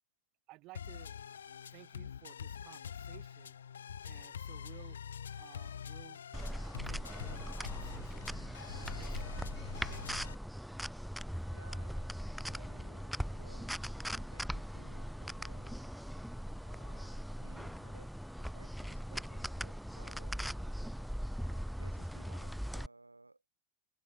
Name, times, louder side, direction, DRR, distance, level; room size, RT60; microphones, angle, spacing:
voice 1, 0.5-1.4 1.7-3.7 4.0-5.0 5.4-6.2 6.8-8.3 8.7-9.5 9.9-10.1, right 21 dB, 40° right, 7.5 m, -57 dB
sound 1, 0.7-10.3, left 8 dB, 65° left, 0.4 m, -45 dB
sound 2, 6.3-22.9, equal, ahead, 0.7 m, -40 dB
voice 2, 11.5-13.8 14.1-15.9 16.6-18.1 18.5-20.7 21.4-23.5, right 2 dB, 80° right, 6.9 m, -60 dB
figure-of-eight pair, 90°, 0 cm